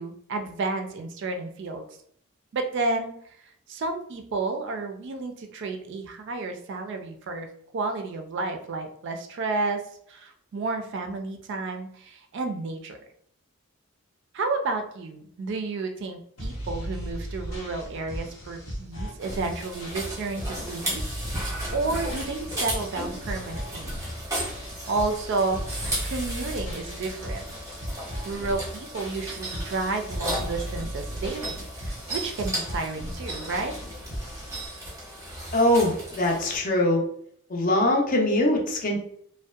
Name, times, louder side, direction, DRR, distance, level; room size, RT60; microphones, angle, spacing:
voice 1, 0.0-1.9 2.5-3.1 3.7-7.5 7.7-9.8 10.1-13.0 14.3-23.9 24.9-27.4 28.2-33.7, right 3 dB, 55° right, 5 dB, 0.3 m, -31 dB
sound 1, 16.4-34.7, equal, 85° left, 1.0 m, -36 dB
sound 2, 19.2-36.6, right 1 dB, 15° right, 0.6 m, -35 dB
voice 2, 35.5-37.0 37.5-39.0, left 1 dB, 40° left, 0 dB, 0.5 m, -22 dB
2.6 x 2.1 x 2.3 m, 0.64 s
head